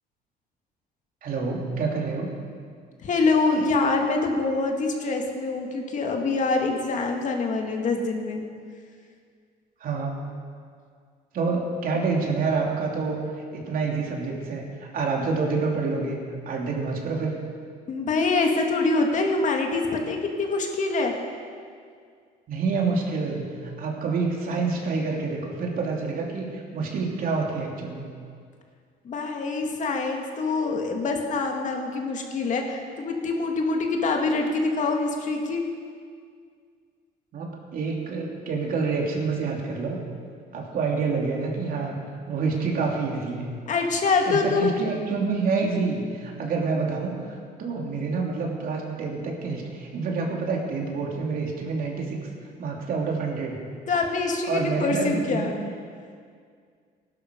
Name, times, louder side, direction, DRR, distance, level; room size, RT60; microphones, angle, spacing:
voice 1, 1.2-2.3 9.8-10.2 11.3-13.2 13.5-16.2 16.4-17.3 22.5-28.1 37.3-40.0 40.5-42.0 42.3-43.5 44.3-52.2 52.6-53.6 54.4-55.5, right 4 dB, 55° right, -1 dB, 3.1 m, -27 dB
voice 2, 3.0-8.4 17.9-21.1 29.0-35.6 43.7-44.8 53.9-55.5, left 3 dB, 50° left, 2 dB, 2.2 m, -25 dB
17.5 x 12.0 x 5.4 m, 2.1 s
cardioid pair, 110°, 17 cm